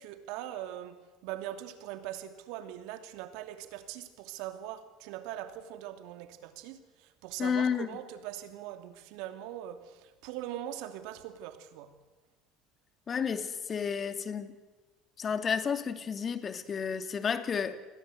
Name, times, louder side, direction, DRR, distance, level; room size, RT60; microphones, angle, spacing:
voice 1, 0.0-11.9, right 12 dB, 70° right, 2.7 m, -41 dB
voice 2, 7.4-7.9 13.1-14.5 15.2-17.8, left 6 dB, 35° left, 2.6 m, -31 dB
29.5 x 20.5 x 8.0 m
hypercardioid pair, 80°, 0 cm